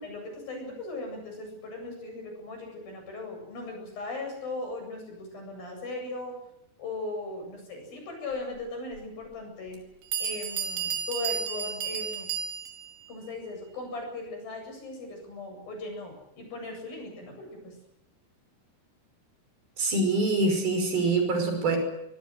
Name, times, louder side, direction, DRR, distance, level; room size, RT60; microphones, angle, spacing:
voice 1, 0.0-6.4 6.8-9.8 10.2-12.3 13.1-17.8, left 2 dB, 60° left, 3 dB, 9.9 m, -38 dB
Bell, 8.9-9.0 9.7-9.8 10.1-12.9, right 7 dB, 80° right, 5.4 m, -32 dB
voice 2, 19.8-21.8, right 3 dB, 60° right, 5 dB, 7.6 m, -25 dB
25.0 x 21.5 x 8.0 m, 0.81 s
omnidirectional pair, 4.8 m